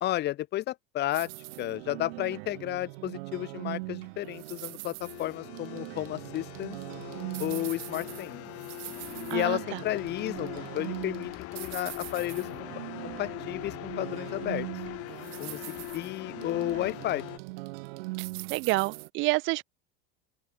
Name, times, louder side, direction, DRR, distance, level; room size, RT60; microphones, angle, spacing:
voice 1, 0.0-1.3 1.6-6.8 7.4-8.4 9.3-12.7 13.0-14.7 15.4-17.2, left 14 dB, 35° left, 0.9 m, -32 dB
sound 1, 1.1-19.1, right 25 dB, 75° right, 1.4 m, -41 dB
sound 2, 5.0-17.4, left 21 dB, 50° left, 1.6 m, -42 dB
voice 2, 9.3-9.8 18.5-19.6, right 23 dB, 40° right, 0.5 m, -28 dB
supercardioid pair, 135°, 30 cm